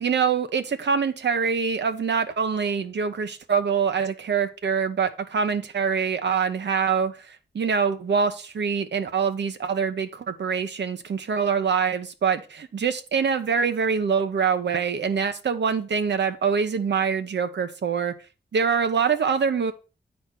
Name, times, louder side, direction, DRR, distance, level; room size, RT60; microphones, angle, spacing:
voice 1, 0.0-18.1 18.5-19.7, right 6 dB, 90° right, 10 dB, 1.0 m, -24 dB
9.5 x 4.3 x 5.8 m, 0.33 s
wide cardioid pair, 135°, 18 cm